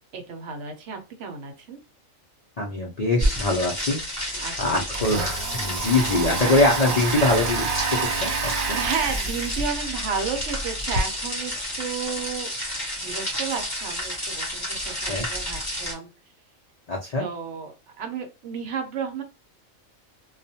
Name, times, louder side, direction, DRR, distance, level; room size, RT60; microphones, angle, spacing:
voice 1, 0.1-1.8 4.4-4.8 6.1-6.5 6.9-7.0 8.2-12.5 13.0-16.1 17.2-17.7 18.0-19.2, right 6 dB, 65° right, 5 dB, 0.9 m, -33 dB
voice 2, 2.6-7.7 8.0-8.8 15.1-15.3 16.9-17.2, left 2 dB, 70° left, 0 dB, 0.3 m, -23 dB
sound 1, 3.2-15.9, equal, 15° left, 1.0 m, -30 dB
Domestic sounds home sounds, 4.0-4.1 4.4-11.0, right 4 dB, 85° right, 1.1 m, -29 dB
2.4 x 2.1 x 2.7 m, 0.29 s
omnidirectional pair, 1.4 m